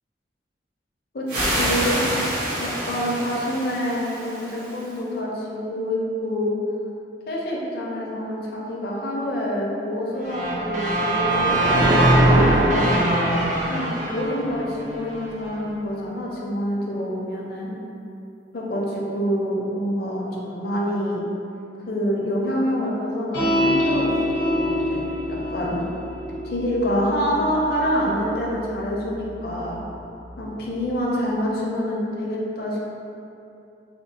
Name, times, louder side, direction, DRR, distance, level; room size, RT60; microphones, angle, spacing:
voice 1, 1.1-2.1 2.6-6.6 7.3-13.2 13.7-17.7 18.5-21.2 21.9-24.1 24.4-25.0 25.3-25.8 26.4-29.8 30.4-32.8, equal, 55° left, -4 dB, 0.5 m, -26 dB
sound 1, 1.3-4.9, right 1 dB, 70° right, 0.9 m, -27 dB
sound 2, 10.2-15.3, right 1 dB, 45° right, 0.4 m, -20 dB
sound 3, 23.3-30.0, equal, 80° left, 0.9 m, -27 dB
3.5 x 2.2 x 2.7 m, 2.7 s
head